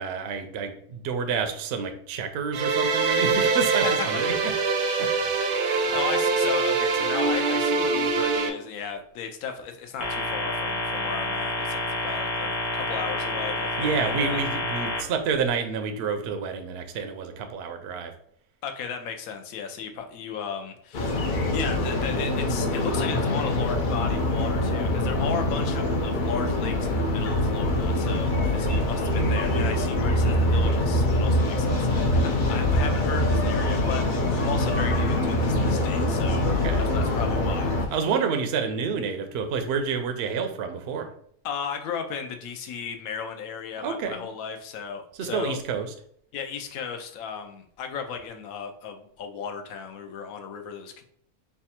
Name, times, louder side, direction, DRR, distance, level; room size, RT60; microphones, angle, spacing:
voice 1, 0.0-4.3 5.0-5.1 5.4-6.0 13.8-18.1 36.4-36.9 37.9-41.1 43.8-44.3 45.2-45.9, right 6 dB, 65° right, 6 dB, 0.6 m, -29 dB
sound 1, 2.5-8.5, right 4 dB, 85° right, 1.1 m, -24 dB
voice 2, 4.8-14.4 18.6-34.1 34.4-38.0 41.4-45.6 46.3-51.0, left 6 dB, 75° left, 5 dB, 1.0 m, -35 dB
sound 2, 10.0-15.0, left 1 dB, 20° left, 0.7 m, -29 dB
sound 3, 20.9-37.9, left 1 dB, 55° left, 0.5 m, -24 dB
3.3 x 2.3 x 4.2 m, 0.64 s
omnidirectional pair, 1.5 m